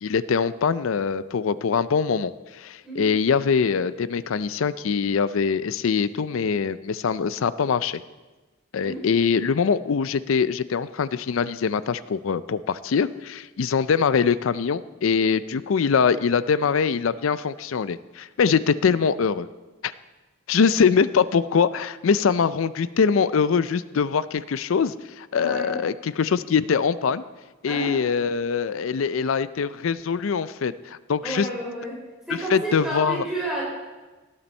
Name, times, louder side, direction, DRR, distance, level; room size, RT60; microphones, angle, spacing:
voice 1, 0.0-8.0 8.7-19.5 19.8-19.9 20.5-27.2 27.6-31.5 32.3-33.2, left 6 dB, 80° left, 15 dB, 0.4 m, -23 dB
voice 2, 25.3-25.8 27.7-27.9 31.2-32.0 32.3-33.6, right 1 dB, ahead, -5 dB, 3.6 m, -30 dB
17.5 x 9.8 x 4.4 m, 1.2 s
head